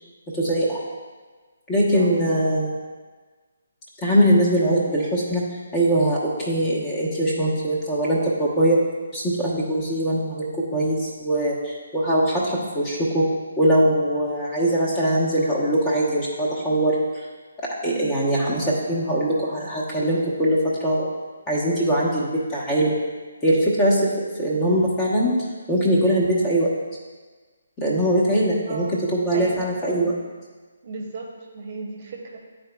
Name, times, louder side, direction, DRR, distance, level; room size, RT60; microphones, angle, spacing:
voice 1, 0.3-0.8 1.7-2.7 4.0-5.4 5.7-8.8 9.1-13.3 13.6-17.2 17.6-21.1 21.5-23.0 23.4-25.3 25.7-26.7 27.8-28.9 29.1-30.1, right 1 dB, 15° left, -5 dB, 1.2 m, -21 dB
voice 2, 17.8-18.2 28.7-29.0 29.3-29.7 30.8-31.3 31.5-32.4, right 3 dB, 35° right, -1 dB, 0.9 m, -35 dB
11.0 x 4.0 x 2.3 m, 1.4 s
figure-of-eight pair, 140°, 0 cm